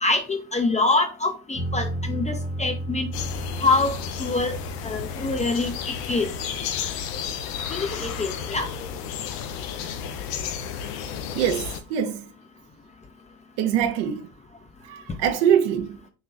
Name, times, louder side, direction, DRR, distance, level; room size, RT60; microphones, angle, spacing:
voice 1, 0.0-3.1 3.6-4.6 4.8-6.3 7.7-8.7, left 3 dB, 15° left, 0.5 m, -25 dB
sound 1, 1.5-7.1, right 1 dB, 10° right, 0.8 m, -34 dB
sound 2, 3.1-11.8, left 7 dB, 70° left, 0.6 m, -32 dB
voice 2, 11.3-12.2 13.6-14.3 14.9-16.0, right 9 dB, 55° right, 0.6 m, -23 dB
3.8 x 2.8 x 2.5 m
figure-of-eight pair, 55°, 49 cm